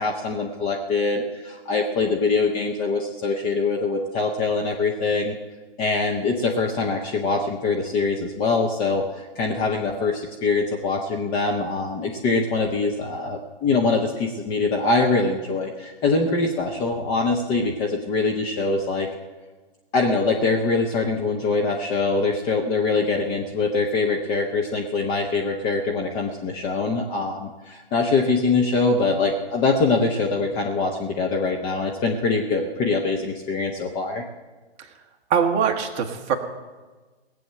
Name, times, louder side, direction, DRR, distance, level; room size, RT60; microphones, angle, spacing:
voice 1, 0.0-5.3 5.8-19.1 19.9-34.2, left 3 dB, 15° left, 1 dB, 0.6 m, -23 dB
voice 2, 35.3-36.4, right 7 dB, 20° right, 3 dB, 1.2 m, -22 dB
18.0 x 7.8 x 7.6 m, 1.3 s
figure-of-eight pair, 135°, 32 cm